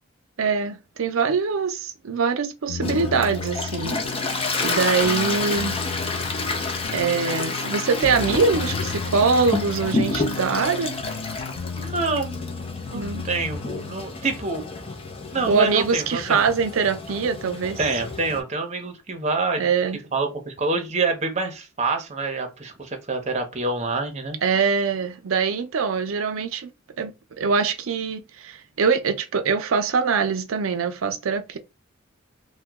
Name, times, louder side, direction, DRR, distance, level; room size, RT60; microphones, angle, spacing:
voice 1, 0.4-5.8 6.9-10.9 12.9-13.3 15.5-17.8 19.6-20.0 24.4-26.7 27.0-31.6, right 5 dB, 80° right, 0.5 m, -23 dB
sound 1, 2.7-14.0, left 5 dB, 80° left, 0.4 m, -35 dB
Toilet flush, 2.8-18.4, left 3 dB, 25° left, 0.5 m, -30 dB
voice 2, 11.7-14.6 15.3-16.4 17.8-19.7 20.1-24.4, right 3 dB, 35° right, 0.7 m, -27 dB
2.9 x 2.2 x 3.4 m
head